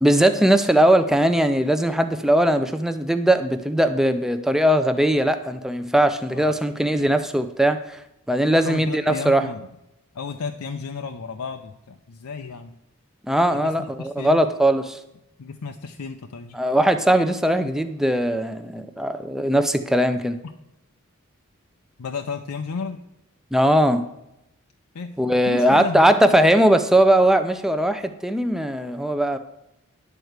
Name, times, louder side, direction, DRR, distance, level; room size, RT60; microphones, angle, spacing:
voice 1, 0.0-8.0 8.3-9.5 13.3-15.0 16.6-20.4 23.5-24.1 25.2-29.4, right 1 dB, ahead, 8 dB, 0.5 m, -19 dB
voice 2, 8.4-9.7 10.1-12.8 13.5-14.4 15.4-16.6 20.4-20.5 22.0-23.0 24.9-25.2 25.4-26.1, left 5 dB, 85° left, 6 dB, 0.6 m, -33 dB
11.0 x 4.6 x 7.9 m, 0.85 s
head